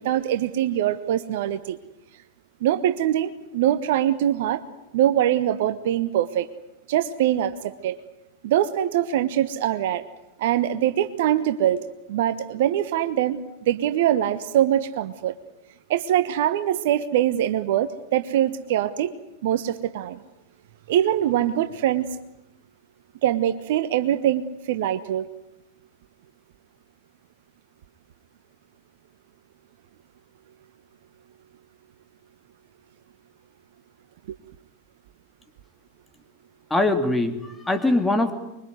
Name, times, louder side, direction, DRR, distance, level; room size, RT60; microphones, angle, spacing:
voice 1, 0.0-1.8 2.6-4.6 4.9-6.5 6.9-8.0 8.4-10.0 10.4-11.8 12.1-13.4 13.7-15.3 15.9-19.1 19.4-20.2 20.9-22.2 23.2-25.3, right 11 dB, 55° right, 12 dB, 1.2 m, -23 dB
voice 2, 36.7-38.3, left 2 dB, 5° left, 5 dB, 3.2 m, -22 dB
25.0 x 23.0 x 9.5 m, 0.93 s
figure-of-eight pair, 90°, 0 cm